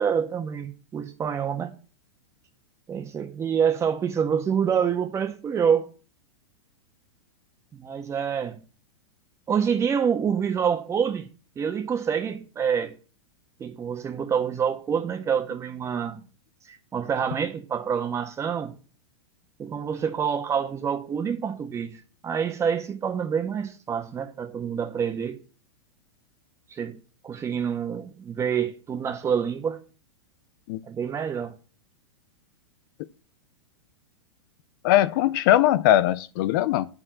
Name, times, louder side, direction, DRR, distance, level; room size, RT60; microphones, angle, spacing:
voice 1, 0.0-1.7 2.9-5.8 7.7-8.6 9.5-11.3 11.6-12.9 13.6-16.2 16.7-18.7 19.6-25.4 26.7-27.0 27.2-29.8 30.8-31.5, right 7 dB, 20° right, 1.4 m, -27 dB
voice 2, 34.8-36.9, left 13 dB, 50° left, 0.5 m, -20 dB
8.6 x 4.7 x 7.4 m
hypercardioid pair, 130°, 14 cm